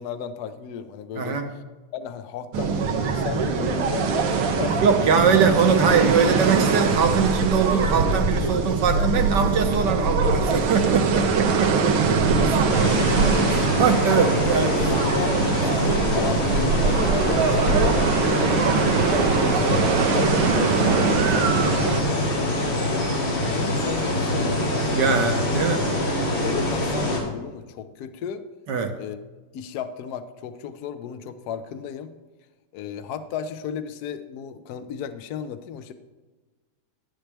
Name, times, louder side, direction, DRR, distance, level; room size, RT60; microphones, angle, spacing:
voice 1, 0.0-1.4 1.9-5.3 6.9-7.5 8.0-8.6 11.1-11.2 11.7-11.9 12.4-13.3 14.1-14.3 14.5-18.2 18.8-25.0 26.2-28.4 29.0-29.2 29.5-32.1 32.7-35.9, left 8 dB, 65° left, 11 dB, 1.0 m, -34 dB
voice 2, 1.1-1.5 4.8-12.2 13.5-14.7 25.0-25.9 28.7-28.9, right 6 dB, 65° right, 6 dB, 1.4 m, -22 dB
sound 1, 2.5-22.0, right 5 dB, 85° right, 1.8 m, -22 dB
sound 2, 12.7-27.2, left 1 dB, 90° left, 3.4 m, -24 dB
11.0 x 10.0 x 3.4 m, 1.3 s
omnidirectional pair, 2.3 m